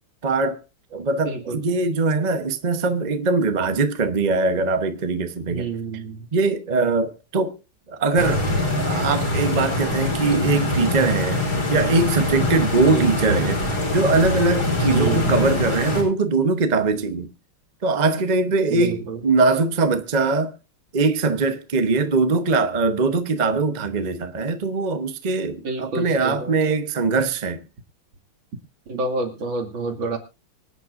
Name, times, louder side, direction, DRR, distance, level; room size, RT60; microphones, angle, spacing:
voice 1, 0.2-0.6 0.9-5.7 6.3-7.6 7.9-11.4 11.7-17.3 17.8-20.5 20.9-27.6, right 3 dB, 35° right, 0.7 m, -21 dB
voice 2, 1.2-1.6 5.5-6.3 12.8-13.2 14.9-15.3 18.7-19.2 25.6-26.5 28.9-30.2, right 3 dB, 65° right, 3.1 m, -28 dB
Stream, 8.2-16.0, left 2 dB, 70° left, 5.7 m, -23 dB
25.0 x 9.1 x 2.6 m
omnidirectional pair, 2.3 m